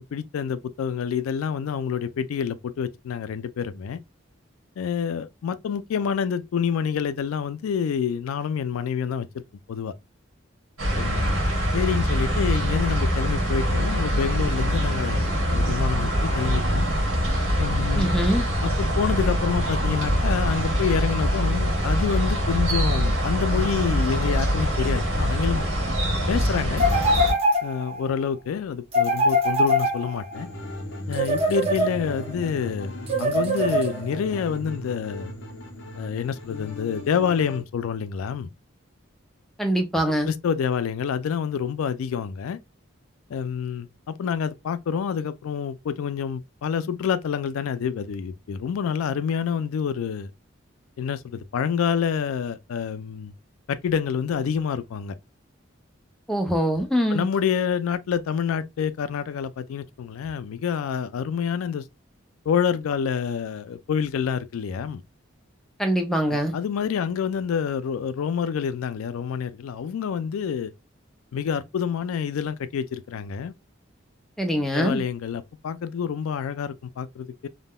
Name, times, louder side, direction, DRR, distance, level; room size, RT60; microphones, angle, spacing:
voice 1, 0.0-4.0 4.8-9.4 9.7-9.9 10.9-11.4 11.7-16.9 17.6-18.1 18.6-25.7 26.3-26.8 27.6-30.5 31.1-35.3 35.9-38.5 40.0-42.6 43.3-50.3 51.0-53.3 53.7-55.2 57.1-61.8 62.5-65.0 66.3-70.7 71.3-73.5 74.7-77.5, left 7 dB, 90° left, 0.3 m, -27 dB
sound 1, 10.8-27.3, equal, 85° right, 1.4 m, -24 dB
voice 2, 17.9-18.5 39.6-40.3 56.3-57.3 65.8-66.5 74.4-75.0, equal, ahead, 0.5 m, -23 dB
sound 2, 26.8-28.1 28.9-30.4 31.1-32.3 33.1-34.3, equal, 30° right, 0.8 m, -23 dB
sound 3, 30.3-37.6, left 1 dB, 65° left, 0.7 m, -37 dB
3.5 x 2.1 x 2.2 m
head